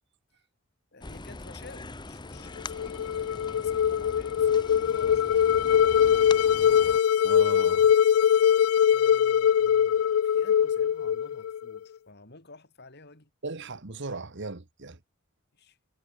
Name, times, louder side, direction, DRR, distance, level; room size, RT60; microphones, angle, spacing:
voice 1, 0.9-5.9 8.4-8.5 8.9-13.3 15.5-15.8, left 3 dB, 50° left, 4.1 m, -51 dB
sound 1, 1.0-7.0, left 2 dB, 20° left, 1.0 m, -42 dB
sound 2, 2.6-11.8, left 9 dB, 80° left, 0.3 m, -22 dB
voice 2, 7.2-7.9 13.4-15.0, right 3 dB, 55° right, 1.5 m, -37 dB
head